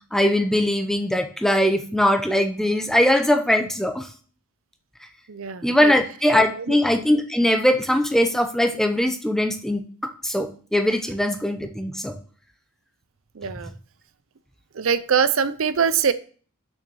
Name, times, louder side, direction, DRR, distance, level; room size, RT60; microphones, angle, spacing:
voice 1, 0.1-4.1 5.6-12.2, left 1 dB, ahead, 7 dB, 0.7 m, -21 dB
voice 2, 5.3-5.9 6.5-6.8 13.3-13.7 14.7-16.1, right 6 dB, 65° right, 14 dB, 0.6 m, -23 dB
6.5 x 6.1 x 6.2 m, 0.42 s
head